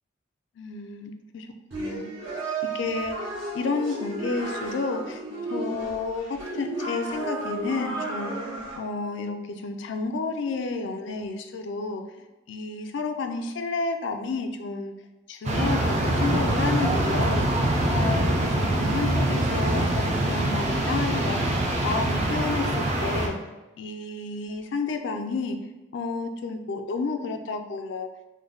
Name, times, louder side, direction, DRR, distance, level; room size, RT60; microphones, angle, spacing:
voice 1, 0.6-1.5 1.8-2.1 2.7-5.2 5.5-8.3 8.8-12.0 12.5-14.9 15.3-21.6 21.8-23.4 23.8-25.6 25.9-28.1, left 4 dB, 65° left, 6 dB, 0.3 m, -31 dB
sound 1, 1.7-8.8, right 2 dB, 75° right, 0.9 m, -33 dB
sound 2, 15.4-23.3, right 1 dB, 35° right, 0.4 m, -24 dB
3.2 x 2.1 x 3.8 m, 1.1 s
head